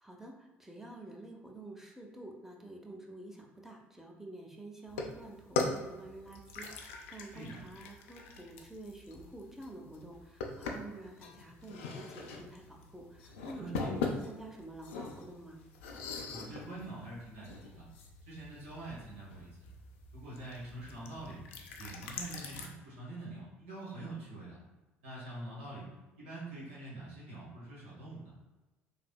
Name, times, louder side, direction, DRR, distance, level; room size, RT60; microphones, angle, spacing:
voice 1, 0.0-15.6, right 2 dB, 5° right, 0 dB, 0.6 m, -49 dB
sound 1, 4.9-22.7, left 3 dB, 75° left, 0.4 m, -42 dB
voice 2, 13.5-13.9 16.3-17.9 18.3-19.5 20.1-21.4 21.7-24.6 25.0-25.8 26.2-28.3, right 2 dB, 80° right, -8 dB, 1.1 m, -45 dB
3.3 x 2.7 x 2.2 m, 1.1 s
hypercardioid pair, 55°, 7 cm